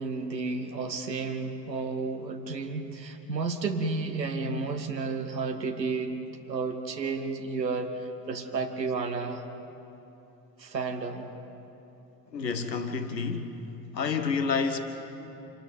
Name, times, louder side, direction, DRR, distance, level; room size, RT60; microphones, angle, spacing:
voice 1, 0.0-6.1 6.5-7.9 8.3-9.4 10.6-11.3, right 4 dB, 85° right, 5 dB, 1.3 m, -32 dB
voice 2, 12.3-13.6 13.9-14.8, left 5 dB, 85° left, 7 dB, 1.2 m, -29 dB
26.5 x 13.0 x 9.1 m, 3.0 s
figure-of-eight pair, 55°, 49 cm